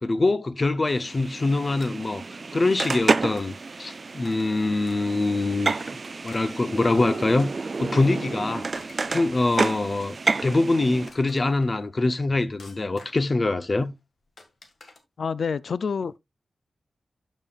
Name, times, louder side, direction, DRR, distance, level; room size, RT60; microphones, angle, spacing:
voice 1, 0.0-2.2 2.5-5.7 6.2-7.5 7.8-8.7 9.1-10.2 10.4-13.9, left 2 dB, 35° left, 0.7 m, -24 dB
sound 1, 0.9-11.1, right 3 dB, 45° right, 0.3 m, -30 dB
sound 2, 1.8-2.3 2.8-3.0 3.4-3.6 4.2-4.6 4.9-5.3 5.8-6.8 7.4-8.1 8.6-9.7 10.2-10.7 11.1-11.8 12.6-13.4 14.4-15.0, left 3 dB, 55° left, 1.7 m, -51 dB
voice 2, 15.2-16.2, left 5 dB, 70° left, 0.3 m, -27 dB
12.5 x 5.4 x 2.3 m
wide cardioid pair, 115°, 0 cm